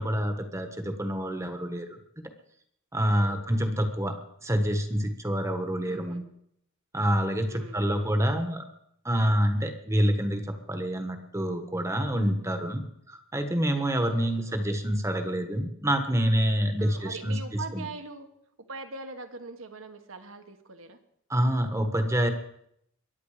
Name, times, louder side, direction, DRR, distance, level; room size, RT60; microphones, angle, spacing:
voice 1, 0.0-2.2 2.9-4.2 4.4-6.2 6.9-8.6 9.0-17.9 21.3-22.3, equal, 15° right, 6 dB, 1.3 m, -27 dB
voice 2, 3.0-3.7 5.8-6.2 7.4-8.2 14.1-14.7 16.8-18.3 18.7-21.0, right 3 dB, 65° right, 6 dB, 1.6 m, -42 dB
23.0 x 9.6 x 5.0 m, 0.72 s
head